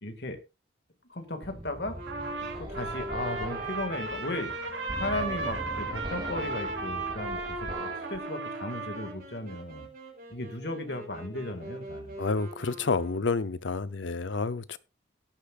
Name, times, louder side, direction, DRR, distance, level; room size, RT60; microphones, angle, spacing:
voice 1, 0.0-0.4 1.1-2.0 2.6-4.5 5.0-9.9 10.3-12.2 13.8-13.9, left 2 dB, 65° left, 2.0 m, -36 dB
sound 1, 1.4-8.2, right 1 dB, 25° right, 2.7 m, -41 dB
Wind instrument woodwind instrument, 1.9-13.6, right 1 dB, 50° right, 5.1 m, -44 dB
Trumpet, 2.1-9.2, right 3 dB, 80° right, 3.7 m, -35 dB
voice 2, 12.2-14.8, left 4 dB, 85° left, 0.7 m, -29 dB
17.0 x 10.0 x 2.5 m
head